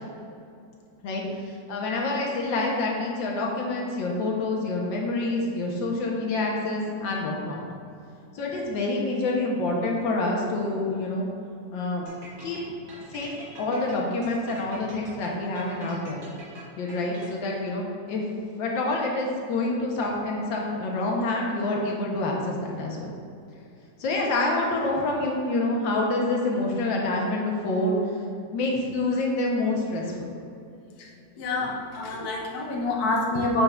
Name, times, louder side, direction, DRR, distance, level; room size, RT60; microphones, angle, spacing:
voice 1, 1.0-7.6 8.3-11.3 11.7-12.1 12.4-12.6 13.1-16.3 16.8-18.2 18.6-23.1 24.0-28.0 28.4-30.2, left 2 dB, 85° left, -1 dB, 1.7 m, -27 dB
sound 1, 12.1-17.6, equal, 60° right, 2.0 m, -45 dB
voice 2, 31.4-33.6, left 2 dB, 60° left, -1 dB, 1.3 m, -26 dB
8.7 x 5.6 x 2.4 m, 2.5 s
omnidirectional pair, 2.0 m